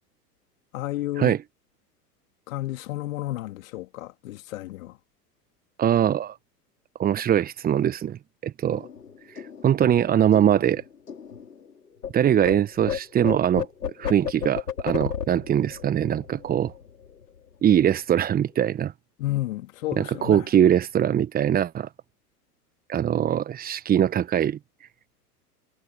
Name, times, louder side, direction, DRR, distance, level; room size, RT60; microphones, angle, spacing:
voice 1, 0.7-1.4 2.5-5.0 19.2-20.5, left 16 dB, 55° left, 2.9 m, -31 dB
voice 2, 5.8-6.4 7.0-8.9 9.3-10.8 12.1-13.7 14.0-16.7 17.6-18.9 20.0-21.9 22.9-24.6, right 10 dB, 20° right, 1.1 m, -22 dB
sound 1, 8.7-12.1 12.4-17.4 17.6-17.9 18.2-18.7, left 8 dB, 75° left, 5.7 m, -34 dB
figure-of-eight pair, 90°, 48 cm